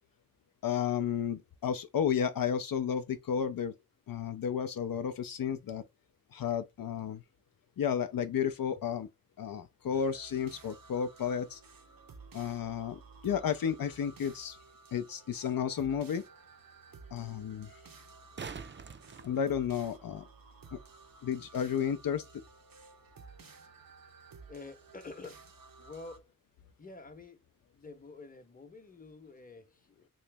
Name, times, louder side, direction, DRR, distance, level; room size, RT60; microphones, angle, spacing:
voice 1, 0.6-3.7 4.1-5.8 6.3-7.2 7.8-9.1 9.4-11.6 12.3-14.6 14.9-16.2 17.1-17.7 19.2-20.3 20.7-20.8 21.2-22.4, left 8 dB, 80° left, 0.5 m, -32 dB
sound 1, 9.9-26.2, right 4 dB, 85° right, 0.7 m, -54 dB
sound 2, 15.2-15.3 18.0-20.2 23.0-23.1, right 5 dB, 35° right, 0.4 m, -46 dB
voice 2, 24.5-25.4 25.8-26.3 26.8-30.1, left 3 dB, 25° left, 0.8 m, -49 dB
3.1 x 2.9 x 3.3 m
wide cardioid pair, 55°, 34 cm